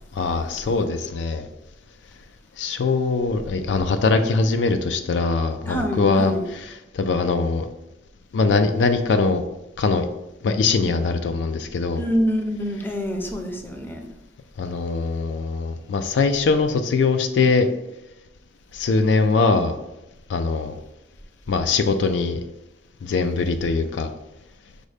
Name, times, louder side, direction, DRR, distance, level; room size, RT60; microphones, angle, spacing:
voice 1, 0.1-1.5 2.6-7.7 8.3-9.4 9.8-10.1 10.4-12.0 14.6-17.7 18.7-19.8 20.3-20.7 21.5-22.4 23.0-24.1, left 4 dB, 75° left, 8 dB, 0.4 m, -22 dB
voice 2, 5.7-6.5 11.9-14.1, equal, 10° left, 3 dB, 0.5 m, -26 dB
5.2 x 2.1 x 4.8 m, 0.93 s
head